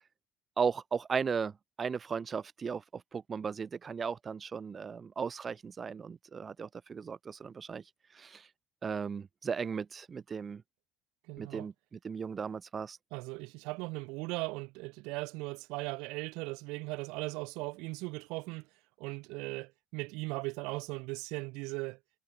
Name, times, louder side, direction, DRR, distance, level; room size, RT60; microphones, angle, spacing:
voice 1, 0.6-1.5 1.8-2.8 3.1-7.8 8.1-8.5 8.8-10.6 11.4-11.7 12.0-13.0, right 6 dB, 20° right, 2.2 m, -36 dB
voice 2, 11.3-11.7 13.1-18.7 19.0-22.0, right 26 dB, 75° right, 4.1 m, -38 dB
cardioid pair, 170°, 0 cm